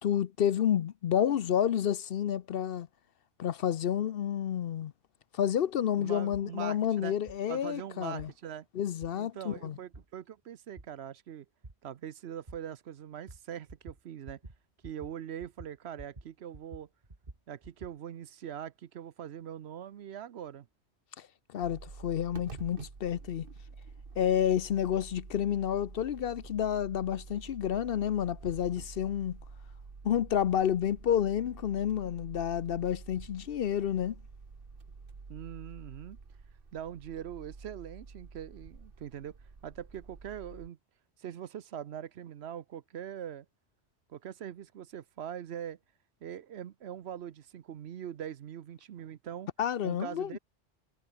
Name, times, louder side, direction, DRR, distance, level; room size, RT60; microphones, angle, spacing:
voice 1, 0.0-2.9 3.4-4.9 5.3-8.3 8.7-9.8 21.2-21.3 21.5-23.5 24.2-29.4 30.0-34.2 49.6-50.3, left 9 dB, 60° left, 0.8 m, -30 dB
voice 2, 6.0-7.1 7.5-8.7 9.1-11.5 11.8-14.4 14.8-16.9 17.5-20.7 35.3-36.2 36.7-39.4 39.6-40.8 41.2-43.5 44.1-45.8 46.2-49.5 49.8-50.4, right 9 dB, 70° right, 1.0 m, -42 dB
sound 1, 6.3-6.5 7.3-7.4 8.2-8.3 9.0-9.1 9.9-10.0 10.8-10.9 11.6-11.7 12.5-12.6 13.3-13.4 13.7-14.0 14.3-14.6 14.8-15.1 15.4-16.3 16.5-17.9, right 2 dB, 35° right, 2.5 m, -48 dB
sound 2, 21.6-40.7, right 4 dB, 50° right, 1.9 m, -48 dB
omnidirectional pair, 1.2 m